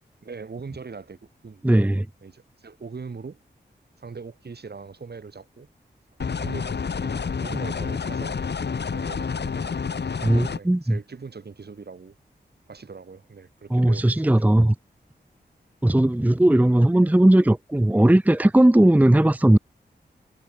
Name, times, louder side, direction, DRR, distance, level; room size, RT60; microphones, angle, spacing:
voice 1, 0.2-1.8 2.2-3.4 4.0-5.7 6.3-8.4 8.9-9.8 10.6-12.1 12.7-14.5, right 5 dB, 60° right, 3.4 m, -41 dB
voice 2, 1.6-2.1 10.2-11.0 13.7-14.7 15.8-19.6, right 1 dB, 10° right, 0.7 m, -18 dB
sound 1, 6.2-10.6, left 5 dB, 70° left, 2.0 m, -29 dB
cardioid pair, 55°, 18 cm